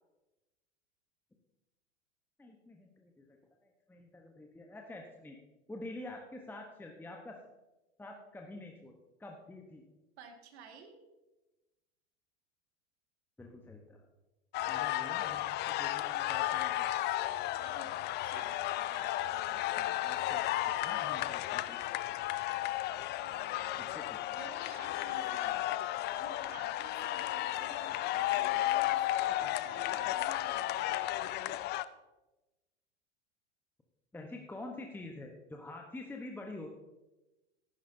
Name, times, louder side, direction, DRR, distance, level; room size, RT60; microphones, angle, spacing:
voice 1, 2.4-5.4 5.7-7.4 8.0-8.9 9.2-9.8 13.4-14.1 14.7-16.9 19.7-21.8 23.8-24.2 34.1-36.7, left 2 dB, 5° left, 2 dB, 1.0 m, -47 dB
voice 2, 10.2-11.0 17.6-20.0 23.2-25.7 26.1-31.0, right 5 dB, 65° right, 5 dB, 1.9 m, -54 dB
sound 1, 14.5-31.8, left 14 dB, 30° left, 0.4 m, -33 dB
13.5 x 11.5 x 2.7 m, 1.1 s
hypercardioid pair, 90°, 35 cm